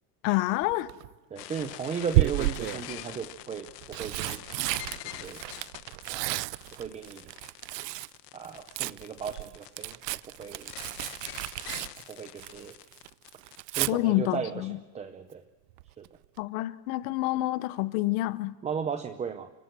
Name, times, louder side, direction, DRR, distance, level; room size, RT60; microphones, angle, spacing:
voice 1, 0.2-0.9 13.9-14.8 16.4-18.5, left 17 dB, 55° left, 1.1 m, -28 dB
Tearing, 0.6-1.1 2.1-2.9 3.6-8.2 8.4-12.7 13.0-13.9 15.8-16.1 16.4-16.5, right 19 dB, 85° right, 0.6 m, -32 dB
voice 2, 1.3-4.4 5.0-5.4 6.1-6.4 6.8-7.3 8.3-10.0 10.2-10.7 12.1-12.8 13.4-15.4 16.0-16.1 18.6-19.5, right 6 dB, 15° right, 0.7 m, -36 dB
sound 1, 1.4-13.6, left 15 dB, 90° left, 1.5 m, -45 dB
30.0 x 17.0 x 6.2 m
supercardioid pair, 150°, 48 cm